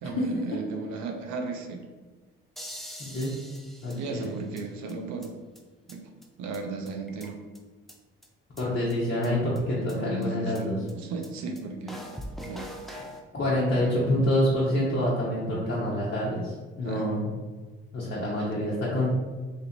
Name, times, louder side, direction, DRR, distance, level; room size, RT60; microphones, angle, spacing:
voice 1, 0.0-1.8 3.9-5.4 5.9-6.0 6.4-7.4 9.8-12.0 12.4-12.7 16.8-17.0 18.2-18.4, right 3 dB, 70° right, 4 dB, 0.7 m, -35 dB
sound 1, 2.6-4.6 4.9-5.0 5.2-5.3 5.6-5.7 5.9-6.0 6.2-6.3 6.5-6.6 6.9-7.6 7.9-8.0 8.2-8.3 8.6-8.7 8.9-9.0 9.2-9.3 9.6-9.7 9.9-10.0 10.2-10.3 10.5-10.6 10.9-11.0 11.2-11.3 11.6-11.7 11.9-13.2, equal, ahead, 0.6 m, -42 dB
voice 2, 3.0-3.4 3.8-4.3 8.6-10.8 13.3-17.2 17.9-19.1, left 1 dB, 40° left, -7 dB, 1.2 m, -27 dB
3.1 x 2.5 x 4.4 m, 1.3 s
hypercardioid pair, 50°, 30 cm